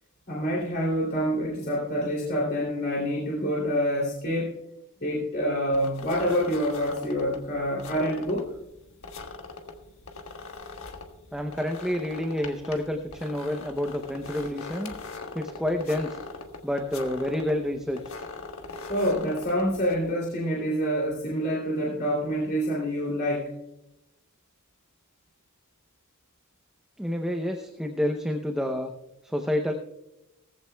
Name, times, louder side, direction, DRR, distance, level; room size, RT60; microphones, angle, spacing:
voice 1, 0.3-4.6 5.0-8.5 18.9-23.5, equal, 45° left, -5 dB, 2.9 m, -27 dB
sound 1, 5.7-20.1, left 3 dB, 65° left, 1.4 m, -41 dB
voice 2, 11.3-14.9 15.3-16.2 16.6-18.0 27.0-28.9 29.2-29.7, left 1 dB, 5° right, 4 dB, 0.7 m, -29 dB
18.0 x 15.0 x 2.3 m, 0.93 s
head